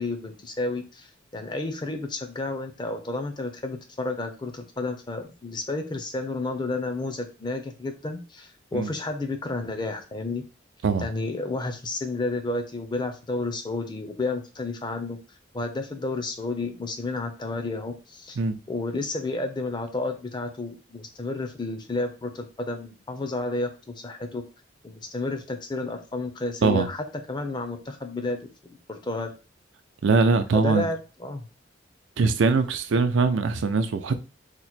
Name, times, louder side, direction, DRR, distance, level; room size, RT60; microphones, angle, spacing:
voice 1, 0.0-10.4 11.0-15.2 15.5-18.4 18.7-24.4 24.8-28.4 28.9-29.3 30.5-31.4, left 2 dB, 25° left, 0.4 m, -31 dB
voice 2, 30.0-30.9 32.2-34.2, right 4 dB, 85° right, 0.4 m, -22 dB
2.9 x 2.1 x 4.1 m
head